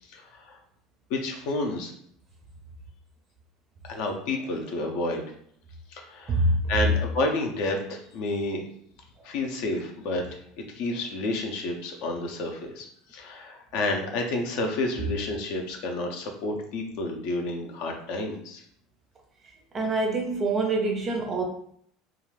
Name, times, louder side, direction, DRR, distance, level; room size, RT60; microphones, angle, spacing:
voice 1, 0.1-0.6 1.1-1.9 3.9-5.3 5.9-8.6 9.2-10.4 10.7-18.6, left 2 dB, 60° left, 2 dB, 0.6 m, -30 dB
voice 2, 19.7-21.4, right 2 dB, 20° right, 3 dB, 0.5 m, -25 dB
2.5 x 2.3 x 3.2 m, 0.65 s
cardioid pair, 165°, 0 cm